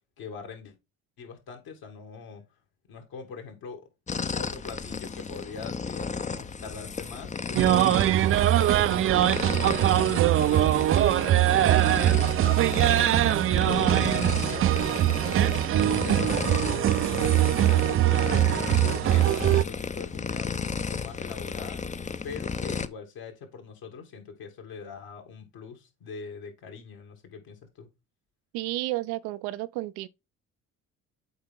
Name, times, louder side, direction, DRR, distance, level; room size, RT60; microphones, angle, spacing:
voice 1, 0.2-0.7 1.2-2.4 2.9-3.8 4.3-9.5 9.8-11.4 11.8-12.9 13.4-18.5 18.7-21.8 22.2-27.9, left 5 dB, 65° left, 2.7 m, -42 dB
sound 1, 4.1-22.9, left 5 dB, 20° left, 0.6 m, -34 dB
sound 2, 7.5-19.6, right 13 dB, 35° right, 0.4 m, -22 dB
voice 2, 28.5-30.1, right 18 dB, 75° right, 0.7 m, -31 dB
8.0 x 4.3 x 3.8 m
hypercardioid pair, 60°, 39 cm